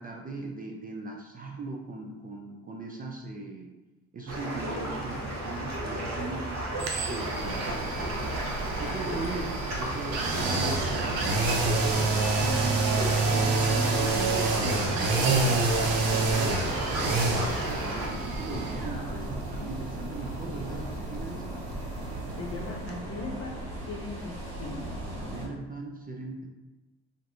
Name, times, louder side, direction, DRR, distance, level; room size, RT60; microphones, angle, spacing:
voice 1, 0.0-3.7 4.1-8.4 8.8-11.8 12.3-21.6 25.2-26.5, right 3 dB, 25° right, 0 dB, 0.4 m, -39 dB
sound 1, 4.3-18.1, right 1 dB, 50° right, 1.0 m, -34 dB
sound 2, 6.8-22.6 22.9-23.0, right 3 dB, 70° right, 0.7 m, -29 dB
sound 3, 7.4-25.5, right 1 dB, 85° right, 1.1 m, -37 dB
voice 2, 22.4-23.6 23.9-24.9, left 2 dB, 40° left, 0 dB, 0.8 m, -38 dB
2.6 x 2.5 x 3.4 m, 1.1 s
hypercardioid pair, 60°, 36 cm